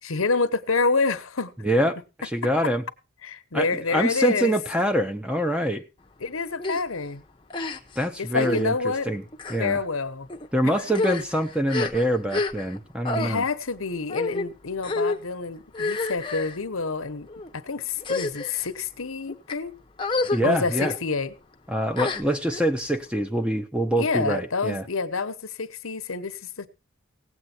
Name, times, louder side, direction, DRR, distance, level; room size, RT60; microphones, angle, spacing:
voice 1, 0.0-1.5 3.2-4.6 6.2-7.2 8.2-9.1 9.6-10.3 13.1-17.3 17.5-19.7 20.4-21.3 24.0-26.7, left 4 dB, 75° left, 1.1 m, -27 dB
voice 2, 1.6-2.0 2.3-2.8 3.5-5.8 8.0-9.2 9.5-9.8 10.5-13.4 20.3-20.9 21.7-24.8, equal, 5° right, 0.8 m, -25 dB
sound 1, 6.6-6.8 7.5-8.0 8.4-8.6 9.3-9.6 10.3-10.5 10.9-12.8 13.0-13.3 14.1-14.5 14.8-15.2 15.7-16.6 17.3-17.5 18.0-18.7 19.3-19.5 20.0-20.4 20.7-20.9 22.0-22.6, left 3 dB, 25° left, 0.9 m, -29 dB
17.5 x 8.1 x 4.4 m
head